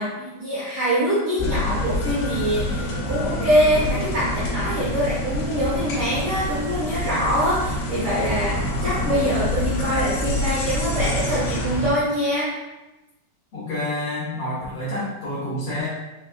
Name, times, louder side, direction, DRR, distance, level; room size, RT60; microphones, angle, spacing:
voice 1, 0.0-12.6, equal, 90° right, -8 dB, 1.1 m, -24 dB
sound 1, 1.4-11.9, left 1 dB, 75° left, 2.2 m, -26 dB
voice 2, 13.5-15.9, left 1 dB, 55° left, -10 dB, 1.8 m, -28 dB
5.1 x 3.2 x 2.3 m, 1.0 s
omnidirectional pair, 4.0 m